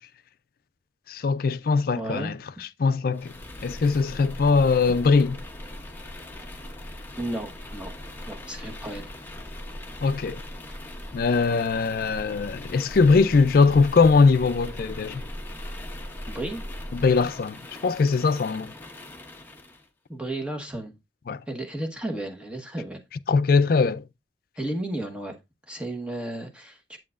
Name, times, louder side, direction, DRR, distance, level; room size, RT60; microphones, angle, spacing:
voice 1, 1.1-3.3 3.6-5.4 10.0-10.4 11.1-15.2 16.9-18.7 21.3-21.4 23.3-24.1, left 4 dB, 50° left, 0.4 m, -21 dB
voice 2, 1.9-2.3 7.2-7.9 8.3-9.1 10.7-10.8 16.3-16.6 20.1-20.9 21.5-23.0 24.6-25.3 25.7-27.0, right 1 dB, 5° right, 1.1 m, -33 dB
sound 1, 3.1-19.8, left 1 dB, 10° left, 0.8 m, -39 dB
7.7 x 7.4 x 2.4 m
head